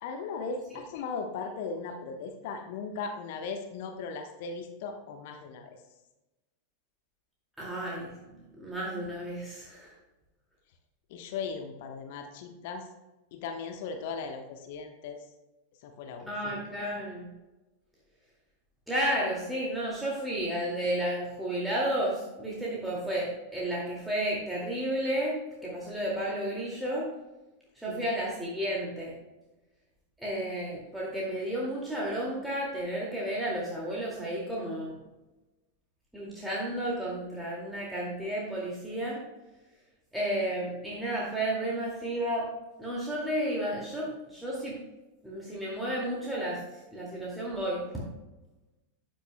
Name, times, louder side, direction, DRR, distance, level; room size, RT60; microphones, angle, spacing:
voice 1, 0.0-5.8 11.1-12.9 13.3-15.2 15.8-16.3 27.9-28.0, left 5 dB, 50° left, 5 dB, 1.1 m, -37 dB
voice 2, 7.6-8.2 8.6-9.9 16.3-17.3 18.9-27.1 27.8-29.2 30.2-34.9 36.1-39.2 40.1-42.5 42.8-44.7 45.2-46.6 46.9-47.8, right 1 dB, 5° right, -5 dB, 2.2 m, -32 dB
13.5 x 9.0 x 2.2 m, 1.1 s
figure-of-eight pair, 90°, 0 cm